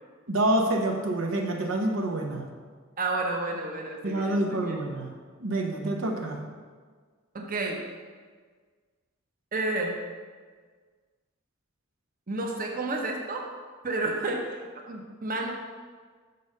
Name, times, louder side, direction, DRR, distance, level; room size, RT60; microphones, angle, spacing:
voice 1, 0.3-2.5 4.0-5.2 5.4-6.4, right 1 dB, 85° right, 2 dB, 0.9 m, -27 dB
voice 2, 3.0-4.8 7.3-7.8 9.5-10.0 12.3-13.5 13.8-15.5, right 2 dB, 45° right, 1 dB, 0.9 m, -31 dB
6.7 x 5.5 x 5.4 m, 1.5 s
head